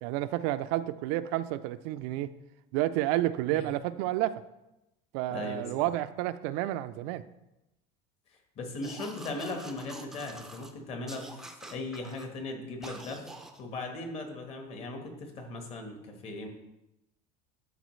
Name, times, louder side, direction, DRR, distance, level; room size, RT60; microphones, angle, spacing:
voice 1, 0.0-2.3 2.7-4.4 5.1-7.2, right 14 dB, 70° right, 13 dB, 0.4 m, -30 dB
voice 2, 5.3-5.7 8.3-11.4 11.7-13.3 13.6-16.5, left 2 dB, 35° left, 3 dB, 1.3 m, -38 dB
sound 1, 8.8-10.7 11.1-12.3 12.8-13.6, right 1 dB, 5° right, 0.5 m, -46 dB
12.0 x 4.6 x 3.2 m, 0.91 s
cardioid pair, 160°, 17 cm